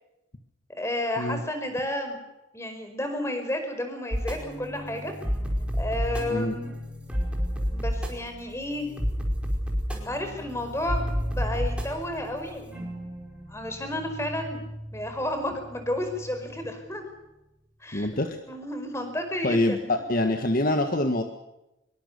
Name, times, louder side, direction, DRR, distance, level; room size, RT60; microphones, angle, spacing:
voice 1, 0.8-2.2 2.5-5.1 5.8-6.8 7.7-8.9 10.0-12.9 13.5-14.6 14.9-17.1 17.8-18.1 18.5-19.9, left 1 dB, 15° left, 6 dB, 5.1 m, -32 dB
sound 1, 4.1-16.7, equal, 5° right, 5.1 m, -31 dB
voice 2, 17.9-18.4 19.4-21.2, left 1 dB, 45° left, 6 dB, 1.7 m, -25 dB
25.0 x 23.0 x 6.9 m, 0.92 s
head